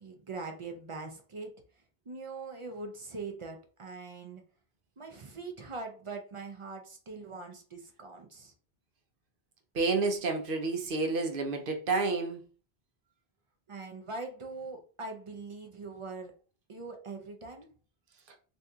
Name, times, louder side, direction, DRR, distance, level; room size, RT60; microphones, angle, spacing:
voice 1, 0.0-1.6 2.1-4.4 5.0-8.5 13.7-16.3 16.7-17.7, right 3 dB, 40° right, 0.5 m, -42 dB
voice 2, 9.7-12.4, right 3 dB, 65° right, 0.8 m, -29 dB
2.7 x 2.5 x 3.4 m
omnidirectional pair, 1.0 m